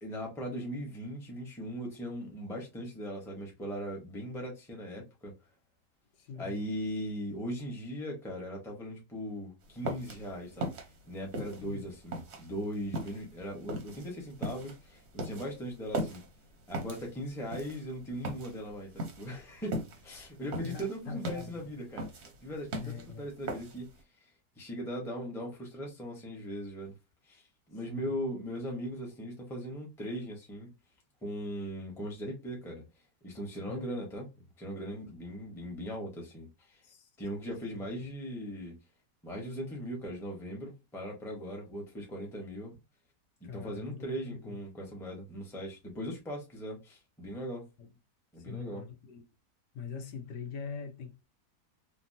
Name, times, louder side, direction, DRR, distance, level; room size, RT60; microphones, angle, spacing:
voice 1, 0.0-5.3 6.3-10.7 11.1-16.2 16.7-23.9 24.2-24.3 24.6-26.9 27.2-27.4 27.7-30.7 31.2-32.8 33.2-34.3 34.6-36.8 37.2-38.8 39.2-42.8 43.5-47.7 48.3-48.8, equal, ahead, 0.6 m, -39 dB
voice 2, 6.1-6.5 11.6-11.9 20.6-21.6 22.8-23.3 27.9-28.2 33.7-33.9 36.8-37.1 37.8-38.0 43.4-44.6 47.8-47.9 48.4-49.2 49.7-51.2, left 5 dB, 80° left, 1.3 m, -43 dB
sound 1, 9.6-24.0, right 1 dB, 55° right, 0.8 m, -39 dB
3.4 x 2.2 x 2.6 m
omnidirectional pair, 1.8 m